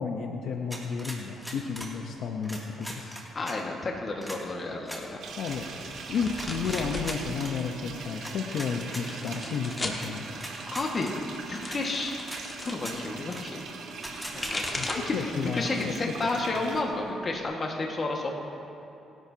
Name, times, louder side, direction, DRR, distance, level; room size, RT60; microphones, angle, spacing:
voice 1, 0.0-3.2 5.4-5.7 6.1-10.3 14.8-15.9, left 5 dB, 70° left, 2 dB, 0.9 m, -32 dB
sound 1, 0.7-1.9 2.4-3.6 4.2-4.4 4.8-5.0 5.4-5.6 6.4-7.5 8.2-9.4 10.0-10.1 10.3-11.1 11.7-11.8 12.2-12.4 12.8-13.0 13.3-13.4 14.0-14.7, equal, ahead, 2.7 m, -40 dB
voice 2, 3.4-5.2 10.7-11.1 11.5-12.2 12.6-13.6 14.3-18.3, left 2 dB, 40° left, 0 dB, 1.7 m, -31 dB
sound 2, 5.2-16.8, right 4 dB, 75° right, 1.9 m, -41 dB
sound 3, 5.5-7.2 7.6-8.2 8.9-10.0 11.1-12.8 14.1-15.2 15.6-16.1 16.4-17.4, left 2 dB, 25° left, 1.7 m, -37 dB
26.5 x 11.0 x 2.9 m, 2.8 s
cardioid pair, 90°, 0 cm